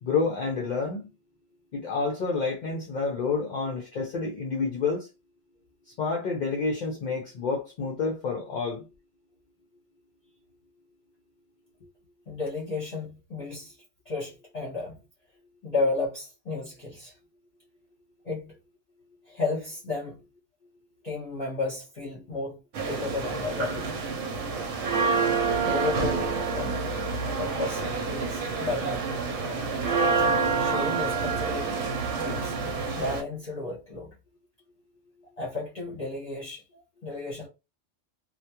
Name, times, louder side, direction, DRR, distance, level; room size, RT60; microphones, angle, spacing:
voice 1, 0.0-1.1 1.7-5.1 6.0-8.9, left 4 dB, 60° left, 0.5 m, -29 dB
voice 2, 12.3-13.7 14.1-15.0 15.6-17.1 18.2-18.6 19.3-20.2 21.0-24.0 25.6-26.8 27.3-29.5 30.2-30.3 30.6-31.8 32.1-34.1 35.4-37.5, left 3 dB, 40° left, 0.8 m, -33 dB
sound 1, 22.7-33.2, right 4 dB, 80° right, 0.9 m, -28 dB
2.3 x 2.2 x 2.8 m
omnidirectional pair, 1.2 m